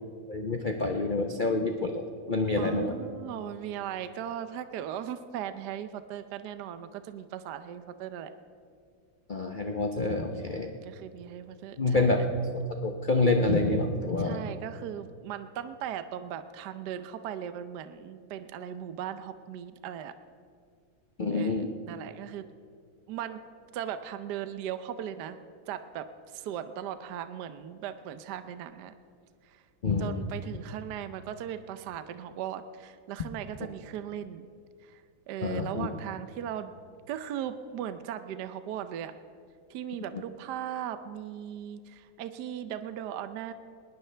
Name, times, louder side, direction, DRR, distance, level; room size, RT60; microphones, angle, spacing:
voice 1, 0.3-2.9 9.3-10.7 11.8-12.2 12.5-14.4 21.2-21.7 29.8-30.2 35.4-35.9, left 2 dB, 55° left, 4 dB, 0.5 m, -27 dB
voice 2, 2.6-8.3 10.3-12.1 14.2-20.1 21.3-22.5 23.1-23.4 23.7-25.4 25.7-28.9 29.4-29.6 30.0-34.5 34.8-35.0 35.3-36.7 37.1-39.1 39.7-43.5, right 10 dB, 65° right, 11 dB, 1.2 m, -38 dB
20.5 x 19.5 x 3.3 m, 2.2 s
omnidirectional pair, 2.1 m